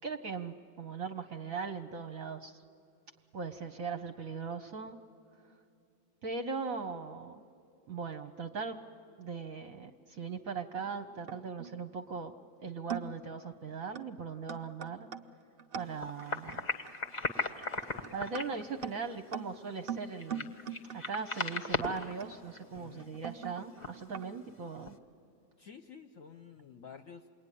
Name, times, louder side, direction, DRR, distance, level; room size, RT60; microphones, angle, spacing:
voice 1, 0.0-2.6 3.3-5.0 6.2-7.4 7.9-8.8 9.2-12.3 12.6-15.1 15.7-16.7 18.1-20.5 20.8-25.0, right 5 dB, 55° right, 7 dB, 1.1 m, -39 dB
sound 1, 10.8-11.8 12.4-12.5 12.9-13.3 13.9-14.1 14.5-24.3, right 7 dB, 75° right, 0.5 m, -43 dB
sound 2, 15.8-22.2 22.5-22.8 23.1-23.2 23.5-23.6 23.8-24.1 24.8-24.9, left 3 dB, 30° left, 0.8 m, -38 dB
voice 2, 22.7-23.1 25.6-27.3, left 7 dB, 55° left, 7 dB, 1.0 m, -51 dB
27.5 x 22.0 x 9.9 m, 2.4 s
omnidirectional pair, 2.1 m